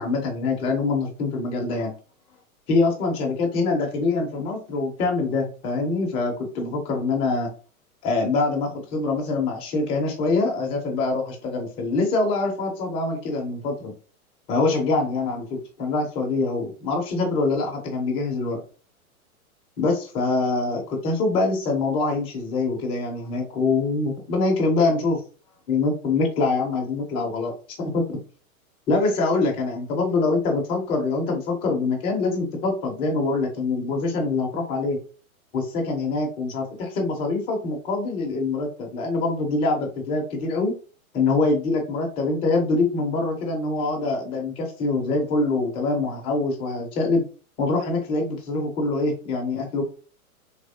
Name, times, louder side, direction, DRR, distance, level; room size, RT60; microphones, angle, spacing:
voice 1, 0.0-1.9 2.7-7.5 8.0-13.9 14.5-18.6 19.8-25.2 25.7-27.5 27.8-28.2 28.9-35.0 35.5-40.7 41.1-47.2 47.6-49.8, left 3 dB, 15° left, 1 dB, 0.4 m, -24 dB
3.3 x 3.0 x 2.6 m, 0.38 s
hypercardioid pair, 130°, 43 cm